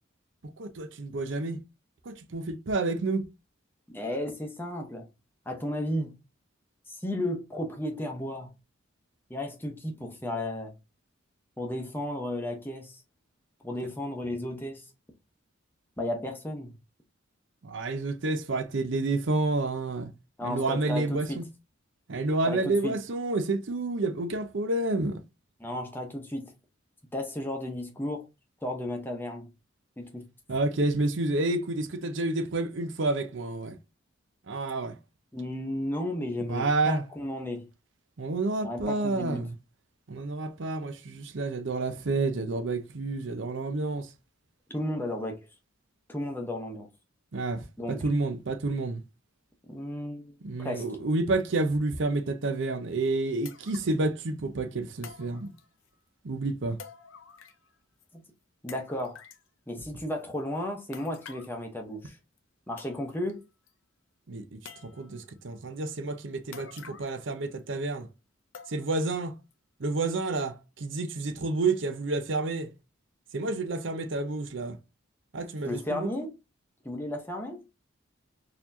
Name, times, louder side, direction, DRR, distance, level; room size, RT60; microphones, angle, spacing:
voice 1, 0.4-1.6 2.0-3.3 17.6-20.1 20.4-21.4 22.1-25.2 30.5-33.8 34.5-35.0 36.5-37.0 38.2-39.5 40.1-44.1 47.3-49.0 50.4-55.5 56.2-56.8 59.8-59.9 64.3-68.1 68.7-69.4 69.8-72.7 73.3-74.8 75.3-76.1, right 2 dB, 60° right, 0.6 m, -29 dB
voice 2, 3.9-5.1 5.5-6.1 6.9-8.5 9.3-10.7 11.6-13.0 13.6-14.9 16.0-16.7 20.4-21.4 22.5-22.9 25.6-26.5 27.1-28.3 28.6-29.5 30.0-30.2 35.3-37.6 38.6-39.4 44.7-45.4 46.1-46.9 47.8-48.1 49.7-50.8 58.1-58.2 58.6-59.2 59.7-62.2 62.7-63.4 75.6-76.3 76.8-77.6, left 1 dB, 10° left, 0.8 m, -34 dB
sound 1, 52.6-52.7 53.4-54.1 55.0-55.9 56.8-57.7 58.0-58.1 58.7-59.5 60.9-61.6 62.4-62.5 62.8-63.3 63.7-63.8 64.6-65.2 66.5-67.3 67.6-67.7 68.5-69.1 69.5-69.6 70.2-70.3, left 7 dB, 70° left, 0.6 m, -48 dB
4.1 x 2.9 x 2.6 m
head